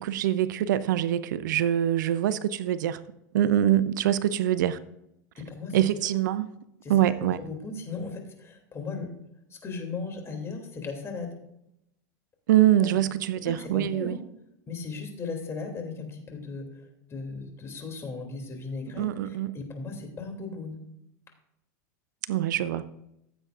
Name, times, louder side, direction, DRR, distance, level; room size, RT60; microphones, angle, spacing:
voice 1, 0.0-3.0 3.3-4.8 5.7-6.5 6.9-7.4 12.5-14.2 19.0-19.6 22.3-22.9, right 12 dB, 80° right, 16 dB, 0.5 m, -24 dB
voice 2, 5.4-5.8 6.8-6.9 7.2-9.1 9.5-11.3 12.8-13.0 13.4-14.2 14.7-16.7 17.1-20.8, left 4 dB, 25° left, 2 dB, 2.8 m, -37 dB
15.0 x 7.9 x 2.5 m, 0.82 s
hypercardioid pair, 100°, 10 cm